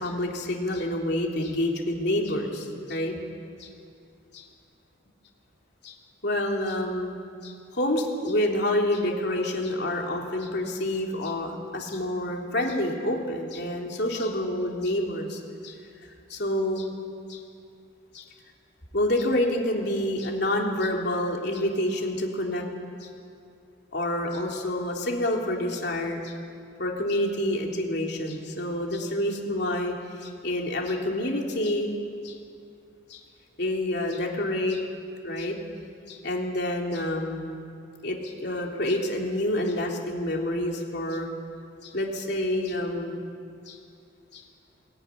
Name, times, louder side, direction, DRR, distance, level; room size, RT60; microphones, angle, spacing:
voice 1, 0.0-3.2 3.6-3.7 4.3-4.4 5.8-5.9 6.2-7.2 7.4-15.8 16.3-16.9 17.3-17.4 18.1-18.2 18.9-22.6 23.0-23.1 23.9-26.3 26.8-29.9 30.2-31.9 32.2-32.4 33.1-33.2 33.6-34.8 35.2-35.6 36.1-37.5 38.0-41.3 41.8-43.1 43.7-43.8 44.3-44.4, left 1 dB, 55° left, 0 dB, 3.3 m, -28 dB
22.0 x 17.0 x 9.9 m, 2.5 s
head